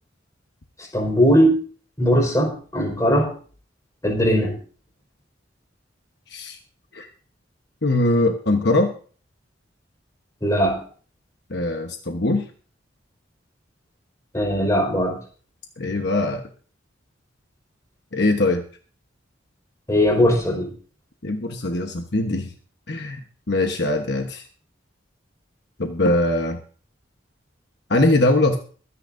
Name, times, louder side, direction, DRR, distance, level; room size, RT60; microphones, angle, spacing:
voice 1, 0.9-1.6 2.0-3.3 4.0-4.5 10.4-10.8 14.3-15.2 19.9-20.7, equal, 15° left, 0 dB, 4.7 m, -19 dB
voice 2, 6.3-6.6 6.9-7.1 7.8-8.9 11.5-12.5 15.8-16.4 18.1-18.6 21.2-22.5 22.9-23.2 23.5-24.5 25.8-26.6 27.9-28.6, left 2 dB, 60° left, 4 dB, 1.2 m, -21 dB
23.5 x 10.0 x 2.7 m, 0.41 s
head